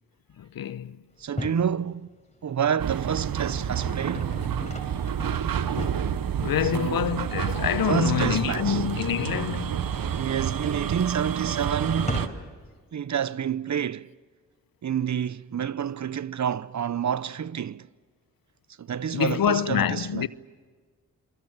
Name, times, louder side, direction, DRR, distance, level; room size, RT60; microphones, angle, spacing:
voice 1, 0.4-1.0 6.4-9.8 19.1-20.3, left 9 dB, 75° left, 0.9 m, -26 dB
sound 1, 1.2-1.7 2.3-12.7, left 1 dB, 20° left, 5.6 m, -40 dB
voice 2, 1.2-2.1 2.4-4.3 6.7-7.1 7.9-8.8 10.1-12.3 12.9-14.1 14.8-17.9 18.8-20.3, right 8 dB, 50° right, 0.8 m, -28 dB
sound 2, 2.8-12.3, right 8 dB, 75° right, 1.2 m, -29 dB
27.5 x 22.5 x 7.3 m
supercardioid pair, 45°, 35 cm